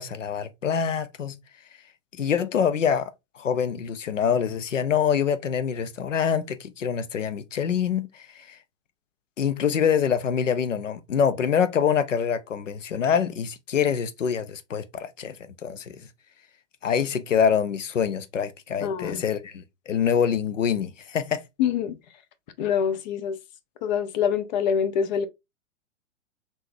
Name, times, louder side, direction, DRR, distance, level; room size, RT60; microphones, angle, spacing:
voice 1, 0.0-1.4 2.1-3.1 3.4-8.6 9.4-16.1 16.8-21.4, left 7 dB, 80° left, 0.6 m, -25 dB
voice 2, 18.8-19.2 21.6-22.0 22.6-23.4 23.8-25.3, left 7 dB, 35° left, 0.5 m, -25 dB
3.8 x 2.7 x 2.7 m
figure-of-eight pair, 100°, 37 cm